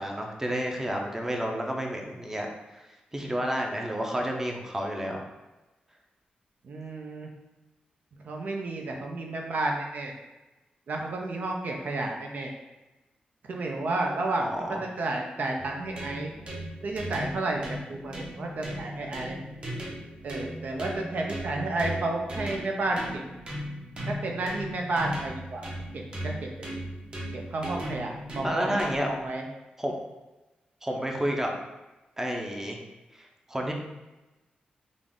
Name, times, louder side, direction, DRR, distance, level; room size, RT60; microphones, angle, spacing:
voice 1, 0.0-2.5 2.7-5.2 14.4-14.8 28.4-29.1 29.8-29.9 30.8-31.5 32.2-32.8 33.1-33.7, equal, 15° right, 1 dB, 0.6 m, -30 dB
voice 2, 6.6-7.3 8.2-10.1 10.9-12.5 13.4-16.3 16.8-17.6 17.9-19.4 20.2-23.2 24.1-25.6 25.9-26.5 27.3-29.4, right 2 dB, 65° right, 1 dB, 0.5 m, -31 dB
sound 1, 15.6-29.3, equal, 35° right, 0.9 m, -37 dB
3.8 x 2.4 x 3.6 m, 1.1 s
cardioid pair, 90°, 3 cm